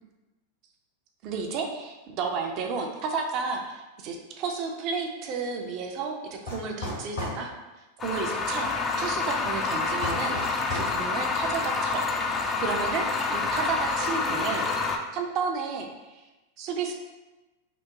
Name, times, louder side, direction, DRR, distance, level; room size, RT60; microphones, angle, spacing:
voice 1, 1.2-7.5 8.0-14.7 15.1-16.2 16.6-16.9, right 5 dB, 45° right, 3 dB, 0.5 m, -32 dB
sound 1, 6.5-7.4 10.0-10.9, left 2 dB, 75° left, 1.2 m, -33 dB
sound 2, 8.0-15.0, left 4 dB, 25° left, 0.4 m, -28 dB
2.9 x 2.1 x 3.5 m, 1.1 s
hypercardioid pair, 95°, 0 cm